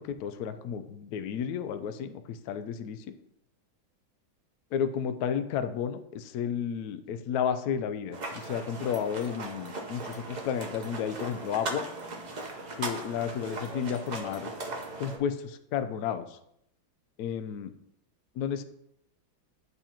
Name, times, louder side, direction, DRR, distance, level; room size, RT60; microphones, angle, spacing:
voice 1, 0.0-3.1 4.7-11.9 12.8-14.5 15.0-16.4 17.2-17.7 18.4-18.6, left 8 dB, 85° left, 10 dB, 0.8 m, -32 dB
sound 1, 8.1-15.2, right 2 dB, 90° right, 0.4 m, -38 dB
10.5 x 4.1 x 2.9 m, 0.77 s
omnidirectional pair, 2.2 m